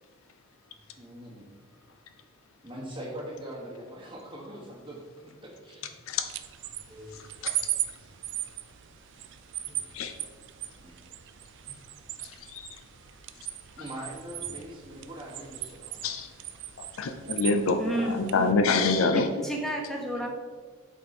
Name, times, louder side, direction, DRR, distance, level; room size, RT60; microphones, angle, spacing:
voice 1, 1.0-1.5 2.6-5.8 8.0-8.1 10.8-11.0 13.8-16.0, right 1 dB, 20° right, -7 dB, 1.1 m, -42 dB
sound 1, 6.1-18.5, right 13 dB, 55° right, 0.4 m, -38 dB
voice 2, 6.9-7.2 9.7-9.8 17.8-18.3 19.1-20.3, right 1 dB, ahead, -1 dB, 1.1 m, -32 dB
voice 3, 17.0-17.8 18.1-19.3 20.1-20.3, left 4 dB, 70° left, 7 dB, 0.5 m, -25 dB
8.0 x 4.4 x 4.2 m, 1.5 s
head